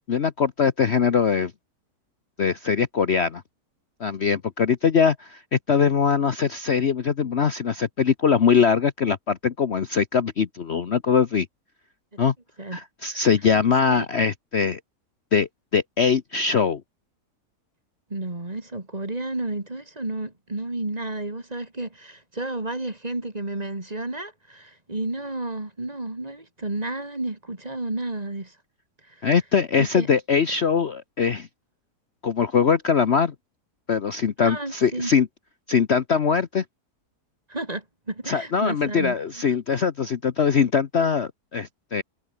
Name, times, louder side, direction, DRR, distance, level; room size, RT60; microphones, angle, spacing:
voice 1, 0.1-1.5 2.4-3.4 4.0-11.5 12.2-12.3 12.7-14.8 15.3-16.8 29.2-31.5 32.2-33.3 33.9-35.3 35.7-36.6 38.3-42.0, left 6 dB, 45° left, 1.1 m, -22 dB
voice 2, 18.1-28.6 29.1-29.3 29.8-30.1 34.4-35.1 37.5-39.4, right 2 dB, 25° right, 2.7 m, -32 dB
omnidirectional pair, 1.8 m